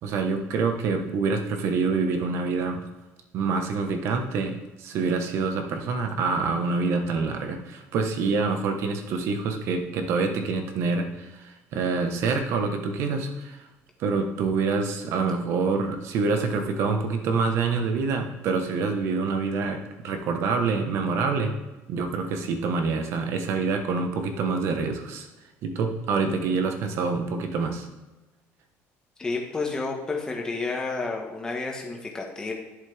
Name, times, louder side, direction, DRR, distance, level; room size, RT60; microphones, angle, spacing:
voice 1, 0.0-2.8 3.3-13.7 14.0-21.5 21.9-25.3 25.6-27.9, right 4 dB, 55° right, 5 dB, 1.2 m, -26 dB
voice 2, 29.2-32.5, left 3 dB, 15° left, 0 dB, 1.4 m, -30 dB
11.0 x 7.4 x 3.5 m, 1.1 s
cardioid pair, 165°, 5 cm